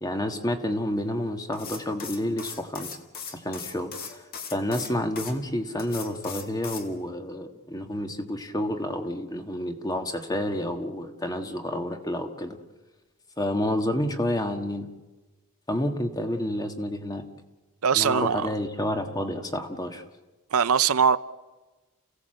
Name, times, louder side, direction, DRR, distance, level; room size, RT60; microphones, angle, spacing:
voice 1, 0.0-3.0 3.3-4.2 4.5-12.6 13.4-14.9 15.7-17.2 17.9-20.0, left 1 dB, 15° left, 1.5 m, -29 dB
sound 1, 1.5-5.3 5.8-6.9, left 6 dB, 45° left, 2.4 m, -38 dB
voice 2, 17.8-18.5 20.5-21.2, right 7 dB, 80° right, 0.7 m, -21 dB
29.5 x 16.5 x 7.8 m
head